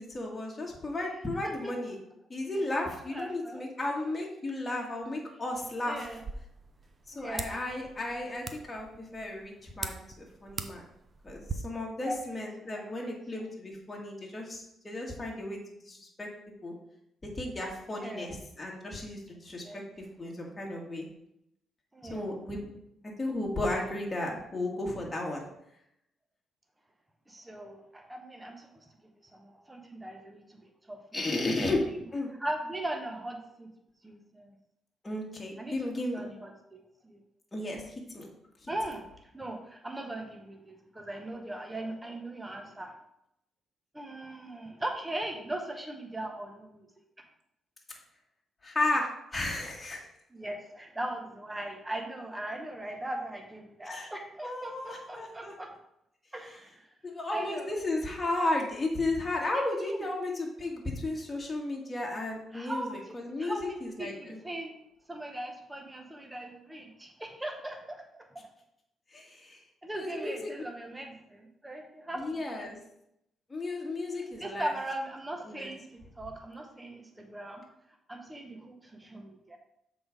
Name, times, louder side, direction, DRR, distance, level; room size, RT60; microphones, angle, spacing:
voice 1, 0.0-2.0 2.3-6.1 7.1-10.8 11.2-16.3 16.6-16.7 17.2-19.8 20.2-21.1 22.0-22.7 23.2-25.4 31.1-32.3 35.0-36.2 37.5-38.3 48.6-50.0 53.9-54.1 54.4-55.5 57.0-64.4 69.1-69.6 69.9-70.5 72.1-72.8 73.5-74.7 75.4-75.7, left 2 dB, 20° left, -2 dB, 1.8 m, -34 dB
voice 2, 3.1-3.7 5.8-6.2 7.1-7.5 12.0-13.4 18.0-18.3 19.5-19.8 21.9-22.3 27.3-28.9 29.3-31.3 32.4-33.7 34.0-34.5 35.6-35.7 36.1-37.2 38.7-39.1 39.3-42.9 43.9-46.9 50.3-55.7 56.3-56.9 57.3-57.8 59.5-60.1 62.5-63.1 63.4-64.7 65.1-68.5 69.8-72.2 72.5-72.6 74.1-75.8 76.2-77.6 78.1-79.6, right 1 dB, 15° right, 3 dB, 1.1 m, -39 dB
sound 1, 6.0-11.6, right 4 dB, 35° right, 0.6 m, -42 dB
6.8 x 4.1 x 4.9 m, 0.78 s
cardioid pair, 90°, 0 cm